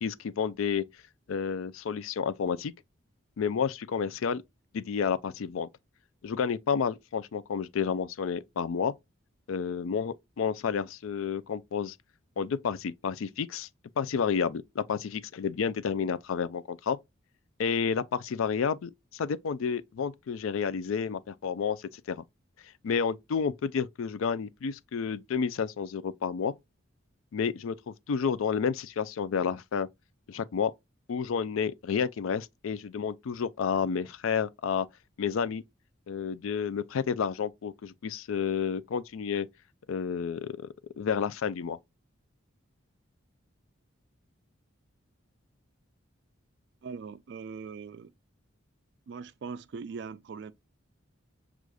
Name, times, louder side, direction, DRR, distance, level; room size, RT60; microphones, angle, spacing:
voice 1, 0.0-0.8 1.3-2.7 3.4-4.4 4.7-5.7 6.2-8.9 9.5-12.0 12.4-13.7 14.0-17.0 17.6-22.2 22.8-26.5 27.3-29.9 30.3-30.7 31.1-34.9 35.2-35.6 36.1-39.5 39.9-40.7 41.0-41.8, left 6 dB, 80° left, 0.4 m, -30 dB
voice 2, 46.8-48.1 49.1-50.5, right 5 dB, 55° right, 0.3 m, -41 dB
6.2 x 2.4 x 2.3 m
head